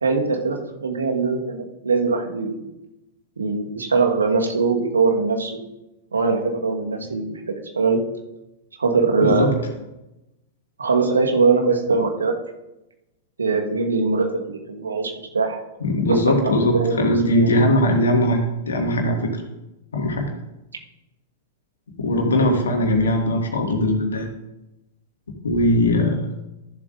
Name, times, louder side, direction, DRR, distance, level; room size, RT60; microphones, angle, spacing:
voice 1, 0.0-2.6 3.4-5.6 6.1-8.0 8.8-9.6 10.8-12.3 13.4-15.6 16.1-17.5, right 4 dB, 80° right, 2 dB, 1.4 m, -22 dB
voice 2, 9.2-9.5 15.8-19.4 19.9-20.3 22.0-24.3 25.4-26.2, left 1 dB, 75° left, 2 dB, 1.9 m, -20 dB
13.5 x 7.3 x 2.6 m, 0.93 s
figure-of-eight pair, 100°, 0 cm